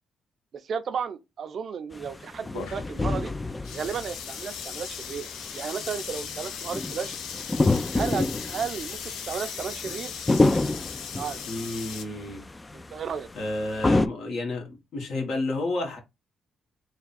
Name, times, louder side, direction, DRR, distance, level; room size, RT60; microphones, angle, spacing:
voice 1, 0.6-3.3 3.7-5.3 5.5-7.1 7.9-10.1 11.1-11.4 12.7-13.3, right 7 dB, 55° right, 0.5 m, -33 dB
sound 1, 1.9-14.1, left 2 dB, 20° left, 0.4 m, -28 dB
sound 2, 2.5-12.1, left 7 dB, 85° left, 0.6 m, -38 dB
voice 2, 11.5-12.4 13.3-16.0, left 2 dB, 65° left, 1.4 m, -31 dB
3.4 x 2.3 x 4.1 m
cardioid pair, 90°, 0 cm